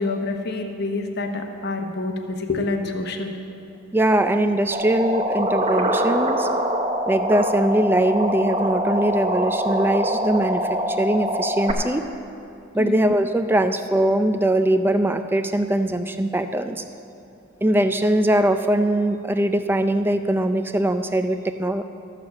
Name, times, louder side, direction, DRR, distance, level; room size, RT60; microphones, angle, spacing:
voice 1, 0.0-3.4 12.8-13.0, left 3 dB, 50° left, 4 dB, 1.0 m, -27 dB
voice 2, 3.9-6.5 7.1-12.0 12.7-16.8 17.6-21.8, right 1 dB, 10° right, 9 dB, 0.4 m, -21 dB
sound 1, 4.7-11.7, equal, 30° right, 0.9 m, -24 dB
13.0 x 6.7 x 7.2 m, 2.7 s
head